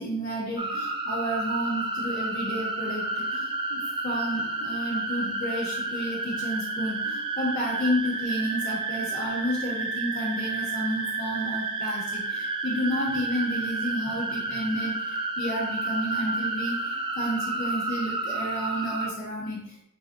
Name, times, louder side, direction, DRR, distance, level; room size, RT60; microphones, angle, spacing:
voice 1, 0.0-19.7, equal, 75° left, -9 dB, 1.2 m, -31 dB
sound 1, 0.6-19.1, right 3 dB, 25° right, 0.4 m, -31 dB
3.7 x 3.3 x 2.4 m, 0.77 s
head